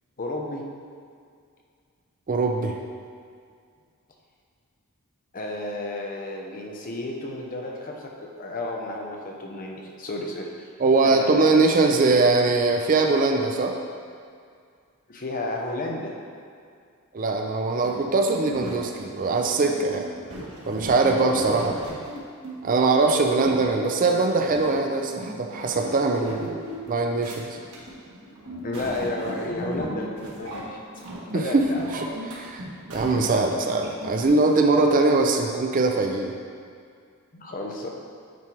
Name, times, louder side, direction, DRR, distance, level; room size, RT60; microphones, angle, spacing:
voice 1, 0.2-0.6 5.3-10.7 11.0-11.9 15.1-16.1 20.9-21.8 28.6-30.8 31.3-31.8 37.3-37.9, left 2 dB, 40° left, -1 dB, 0.8 m, -32 dB
voice 2, 2.3-2.8 10.8-13.8 17.1-20.0 20.7-21.8 22.6-27.6 31.3-31.7 31.9-32.6 32.9-36.4, right 3 dB, 40° right, 3 dB, 0.4 m, -22 dB
sound 1, 17.8-34.3, equal, 90° right, 1.5 m, -38 dB
9.1 x 3.2 x 4.5 m, 2.2 s
head